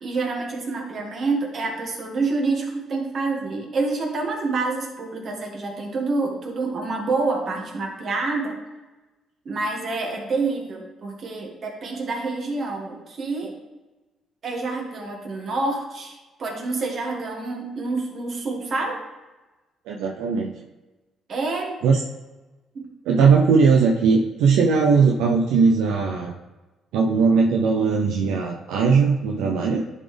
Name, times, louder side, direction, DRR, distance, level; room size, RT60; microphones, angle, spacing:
voice 1, 0.0-8.6 9.5-13.5 14.4-19.0 21.3-21.8 22.7-22.9, right 3 dB, 55° right, 0 dB, 1.9 m, -27 dB
voice 2, 19.9-20.5 21.8-22.0 23.1-26.3 26.9-29.8, right 5 dB, 85° right, 0 dB, 0.6 m, -19 dB
10.5 x 4.1 x 3.4 m, 1.1 s
supercardioid pair, 70°, 0 cm